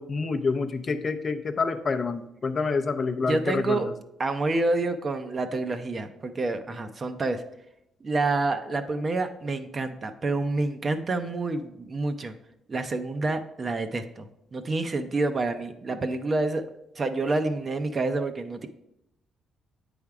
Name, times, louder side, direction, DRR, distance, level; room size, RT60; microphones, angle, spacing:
voice 1, 0.0-3.8, left 4 dB, 40° left, 8 dB, 0.5 m, -27 dB
voice 2, 3.3-3.9 4.2-7.4 8.0-12.3 12.7-18.7, right 3 dB, 35° right, 8 dB, 0.5 m, -28 dB
8.5 x 3.5 x 4.7 m, 0.82 s
cardioid pair, 90°, 0 cm